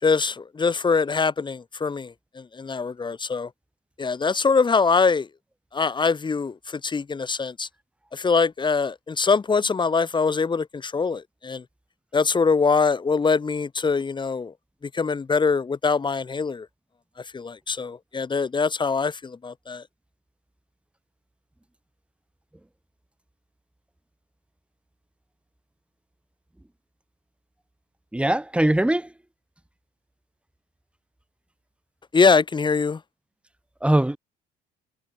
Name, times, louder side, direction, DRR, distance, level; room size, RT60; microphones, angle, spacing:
voice 1, 0.0-3.5 4.0-5.3 5.7-7.7 8.1-11.6 12.1-14.5 14.9-16.7 17.2-19.8 32.1-33.0, left 4 dB, 25° left, 6.6 m, -23 dB
voice 2, 28.1-29.1 33.8-34.2, right 1 dB, 5° right, 6.9 m, -21 dB
cardioid pair, 110°, 17 cm